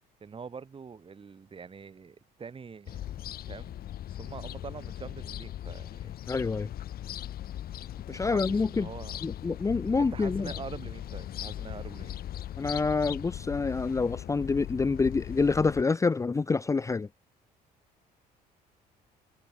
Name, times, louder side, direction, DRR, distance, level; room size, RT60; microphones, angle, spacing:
voice 1, 0.2-3.8 4.2-6.1 8.1-9.2 10.0-12.2, right 5 dB, 30° right, 5.8 m, -44 dB
sound 1, 2.9-15.8, left 12 dB, 65° left, 7.5 m, -39 dB
voice 2, 6.3-6.7 8.1-8.9 9.2-10.5 12.6-17.1, left 4 dB, 20° left, 0.6 m, -27 dB
cardioid pair, 110°, 17 cm